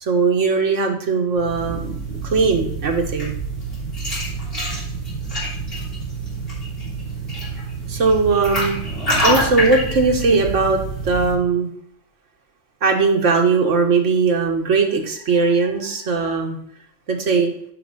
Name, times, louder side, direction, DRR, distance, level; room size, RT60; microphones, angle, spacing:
voice 1, 0.0-1.9 2.2-3.3 7.9-8.8 9.2-11.7 12.8-16.6 17.1-17.5, right 4 dB, 85° right, 3 dB, 1.6 m, -19 dB
sound 1, 1.3-11.3, right 1 dB, 50° left, 3.8 m, -26 dB
9.8 x 5.3 x 3.8 m, 0.64 s
omnidirectional pair, 1.2 m